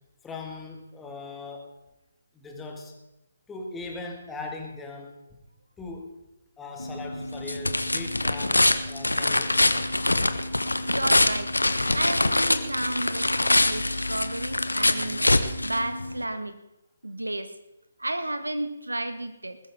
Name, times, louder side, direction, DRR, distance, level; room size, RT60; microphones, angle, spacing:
voice 1, 0.2-1.7 2.3-2.9 3.5-5.2 5.8-6.2 6.6-10.0, left 3 dB, 10° left, 1 dB, 2.1 m, -39 dB
sound 1, 6.8-16.2, left 2 dB, 80° left, 1.1 m, -24 dB
voice 2, 10.9-11.5 11.9-15.3 15.6-16.6 17.0-17.5 18.0-19.6, right 1 dB, 80° right, 10 dB, 1.5 m, -32 dB
20.5 x 13.5 x 3.7 m, 0.94 s
figure-of-eight pair, 140°, 0 cm